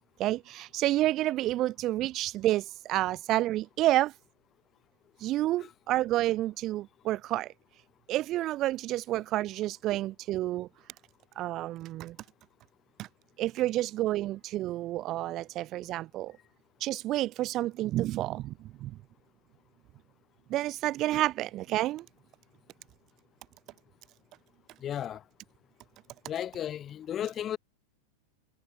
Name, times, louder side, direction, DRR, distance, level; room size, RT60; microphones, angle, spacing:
voice 1, 0.2-4.1 5.2-7.5 8.1-10.7 11.4-12.2 13.0-13.1 13.4-16.4 16.8-19.0 20.5-22.1, right 15 dB, 35° right, 2.5 m, -29 dB
voice 2, 24.8-25.2 26.3-27.6, left 10 dB, 30° left, 5.9 m, -34 dB
figure-of-eight pair, 90°, 0 cm